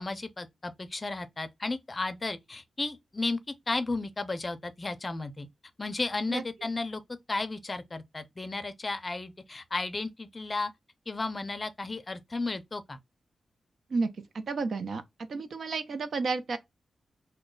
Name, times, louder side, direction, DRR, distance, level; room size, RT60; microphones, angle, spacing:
voice 1, 0.0-3.4 3.7-5.5 5.8-7.0 7.3-10.7 11.1-13.0, left 3 dB, 30° left, 0.5 m, -34 dB
voice 2, 14.3-15.0 15.3-16.6, right 4 dB, 70° right, 0.5 m, -31 dB
3.1 x 2.1 x 3.7 m
wide cardioid pair, 105°, 0 cm